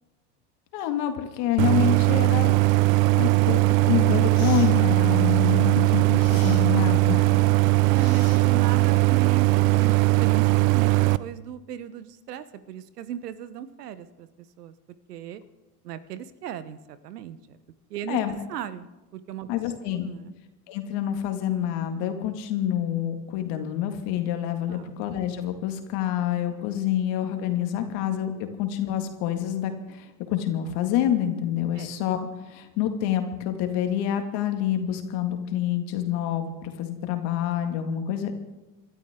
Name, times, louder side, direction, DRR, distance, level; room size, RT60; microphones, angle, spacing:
voice 1, 0.7-2.5 3.1-7.5 18.1-18.3 19.5-20.1 20.7-38.3, left 11 dB, 60° left, 6 dB, 2.2 m, -27 dB
Idling, 1.6-11.2, right 22 dB, 60° right, 0.7 m, -20 dB
sound 1, 3.4-3.6 4.3-4.7 6.2-6.7 7.9-8.7, left 8 dB, 85° left, 2.5 m, -44 dB
voice 2, 7.7-14.3 14.6-14.7 15.1-15.4 15.8-17.6 17.9-18.2 18.5-18.9 19.1-19.5 19.9-20.3 24.7-24.9 31.8-31.9, right 9 dB, 80° right, 14 dB, 1.1 m, -36 dB
27.5 x 12.5 x 3.8 m, 1.1 s
hypercardioid pair, 80°, 47 cm